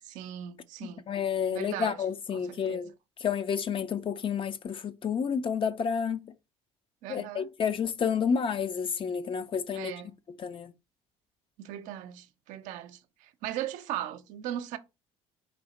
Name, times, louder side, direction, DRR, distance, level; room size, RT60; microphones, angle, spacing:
voice 1, 0.0-1.0 1.5-2.0 2.3-2.9 7.0-7.5 9.7-10.1 11.6-14.8, right 12 dB, 75° right, 0.6 m, -38 dB
voice 2, 0.8-2.9 3.2-6.3 7.1-9.9 10.3-10.7, left 7 dB, 40° left, 0.6 m, -30 dB
4.5 x 2.8 x 4.0 m
supercardioid pair, 70°, 13 cm